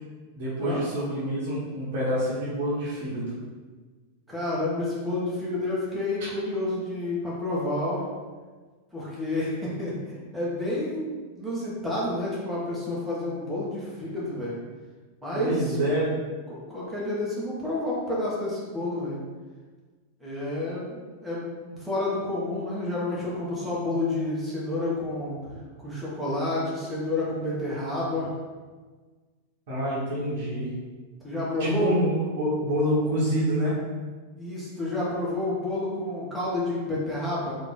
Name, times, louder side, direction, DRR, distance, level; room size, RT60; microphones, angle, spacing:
voice 1, 0.3-3.3 15.3-16.1 29.7-30.7 31.6-32.1 32.4-33.8, equal, 50° right, -9 dB, 1.2 m, -26 dB
voice 2, 4.3-8.0 8.9-14.6 15.2-15.7 16.5-19.2 20.2-25.6 25.8-28.3 31.2-32.0 34.4-37.5, left 2 dB, ahead, -8 dB, 1.4 m, -30 dB
3.7 x 2.9 x 3.9 m, 1.4 s
figure-of-eight pair, 90°, 0 cm